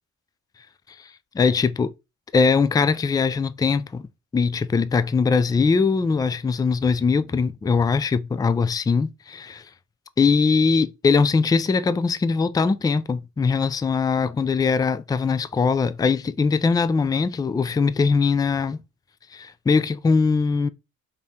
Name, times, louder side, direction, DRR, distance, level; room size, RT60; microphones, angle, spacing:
voice 1, 1.3-1.9 2.3-4.1 4.3-9.6 10.2-18.8 19.3-20.7, left 5 dB, 15° left, 0.3 m, -21 dB
5.1 x 3.7 x 2.8 m
cardioid pair, 90°, 30 cm